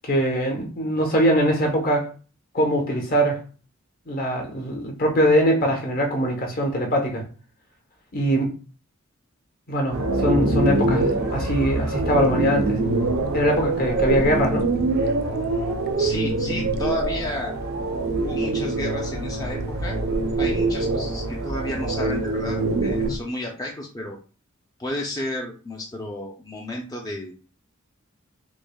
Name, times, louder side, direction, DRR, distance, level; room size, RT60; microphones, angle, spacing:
voice 1, 0.0-2.1 2.5-3.4 4.1-7.2 8.1-8.5 9.7-12.8 13.3-14.7, equal, 45° left, 0.9 m, -22 dB
sound 1, 9.9-23.1, right 2 dB, 85° right, 0.7 m, -25 dB
sound 2, 10.5-23.2, right 1 dB, 50° right, 0.5 m, -34 dB
voice 2, 16.0-17.5 18.2-20.0 20.4-24.2 24.8-27.3, left 1 dB, 15° left, 0.4 m, -32 dB
6.1 x 2.0 x 2.2 m
head